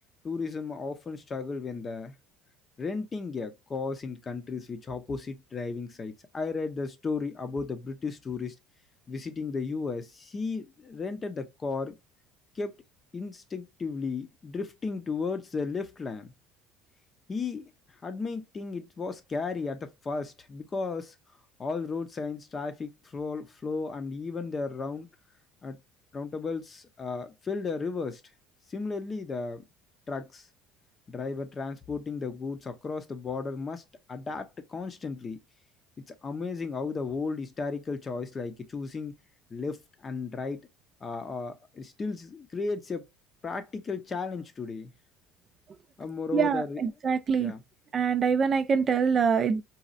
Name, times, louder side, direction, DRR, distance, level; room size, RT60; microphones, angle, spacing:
voice 1, 0.2-2.1 2.8-8.5 9.1-12.0 12.5-12.8 13.1-16.3 17.3-17.7 18.0-21.1 21.6-25.1 25.6-25.8 26.1-28.2 28.7-29.6 30.1-30.5 31.1-33.8 34.1-35.4 36.1-39.1 39.5-40.7 41.0-43.0 43.4-44.9 46.0-46.8 47.4-47.6, left 4 dB, 25° left, 0.7 m, -34 dB
voice 2, 46.3-47.5 47.9-49.6, right 6 dB, 35° right, 0.3 m, -25 dB
4.1 x 2.4 x 2.4 m
cardioid pair, 120°, 0 cm